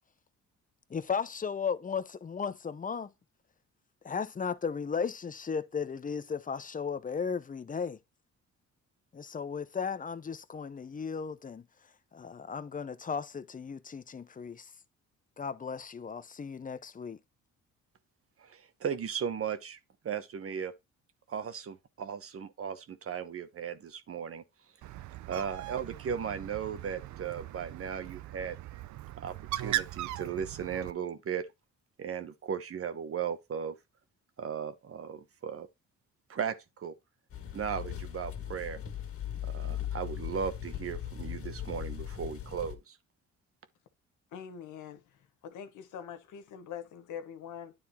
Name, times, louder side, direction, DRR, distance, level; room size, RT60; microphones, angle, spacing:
voice 1, 0.9-3.1 4.0-8.0 9.1-11.6 12.1-14.7 15.4-17.2, left 6 dB, 25° left, 0.8 m, -35 dB
voice 2, 18.4-19.8 20.0-20.7 21.3-24.4 25.3-28.6 29.2-31.5 32.0-33.7 34.4-35.7 36.3-36.9 37.5-38.8 39.5-43.0, right 7 dB, 50° right, 1.1 m, -36 dB
Bird, 24.8-30.9, right 14 dB, 75° right, 0.5 m, -39 dB
sound 1, 37.3-42.7, left 10 dB, 50° left, 1.9 m, -38 dB
voice 3, 44.3-45.0 45.4-47.7, left 8 dB, 80° left, 1.4 m, -43 dB
9.7 x 3.7 x 4.2 m
cardioid pair, 90°, 30 cm